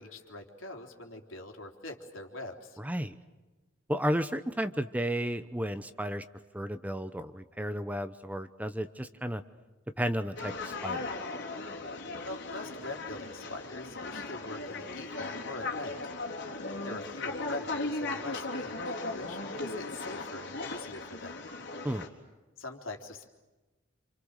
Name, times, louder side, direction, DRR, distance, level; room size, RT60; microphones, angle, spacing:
voice 1, 0.0-2.8 11.9-16.0 16.8-21.4 22.6-23.3, left 2 dB, 80° left, 3 dB, 3.6 m, -43 dB
voice 2, 2.8-3.2 3.9-6.2 6.5-9.4 10.0-11.1 21.8-22.1, equal, 10° right, 10 dB, 0.9 m, -33 dB
sound 1, 10.4-22.1, left 3 dB, 60° left, 3.9 m, -37 dB
28.5 x 28.0 x 6.6 m, 1.1 s
head